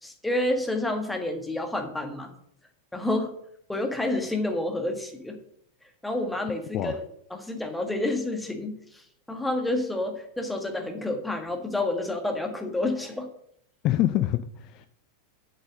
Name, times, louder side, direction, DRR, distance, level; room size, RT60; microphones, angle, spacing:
voice 1, 0.0-2.3 2.9-3.3 3.7-5.4 6.0-7.0 7.3-13.3, left 2 dB, 5° left, 4 dB, 1.6 m, -29 dB
voice 2, 13.8-14.9, left 13 dB, 40° left, 12 dB, 0.5 m, -25 dB
7.4 x 7.4 x 6.3 m, 0.70 s
figure-of-eight pair, 90°, 0 cm